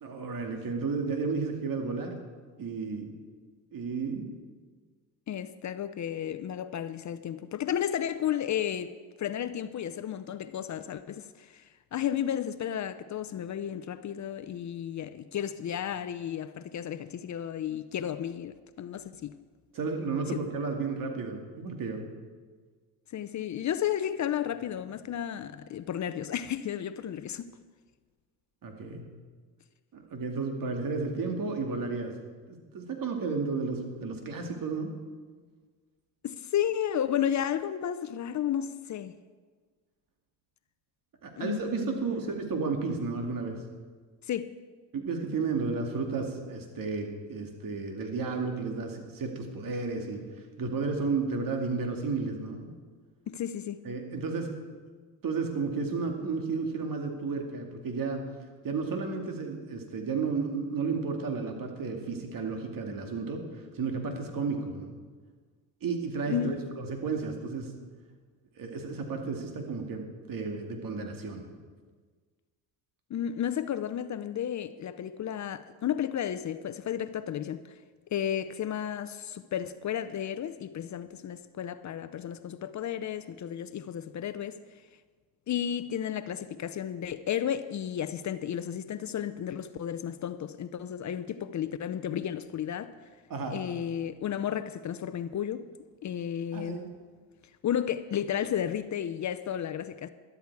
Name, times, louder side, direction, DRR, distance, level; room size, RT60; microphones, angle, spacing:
voice 1, 0.0-2.1 2.6-3.1 3.7-4.3 19.7-22.0 28.6-29.0 29.9-32.1 32.5-34.9 41.2-43.6 44.9-50.2 50.6-52.7 53.8-54.5 55.2-58.2 58.6-65.0 65.8-67.7 68.6-71.5 93.3-93.5 96.5-96.9, right 4 dB, 50° right, 2.4 m, -32 dB
voice 2, 5.3-8.9 9.2-19.4 20.3-20.5 23.1-27.6 36.2-39.1 41.4-42.1 44.2-44.5 53.3-53.8 66.2-66.6 73.1-77.6 78.1-84.6 85.5-92.9 93.5-95.7 96.0-96.8 97.6-100.1, left 9 dB, 45° left, 0.6 m, -33 dB
13.0 x 12.0 x 4.8 m
supercardioid pair, 80°, 42 cm